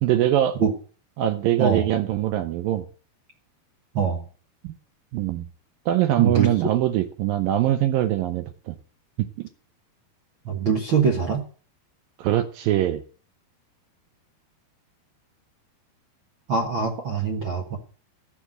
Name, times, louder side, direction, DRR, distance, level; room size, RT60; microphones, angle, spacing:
voice 1, 0.0-0.6 1.2-2.9 4.6-4.7 5.1-5.5 5.9-8.8 9.2-9.5 12.2-13.0, right 12 dB, 75° right, 10 dB, 2.3 m, -23 dB
voice 2, 6.2-6.5 10.4-11.4 16.5-17.8, right 6 dB, 55° right, 2 dB, 1.3 m, -23 dB
14.0 x 7.0 x 7.7 m, 0.40 s
omnidirectional pair, 4.6 m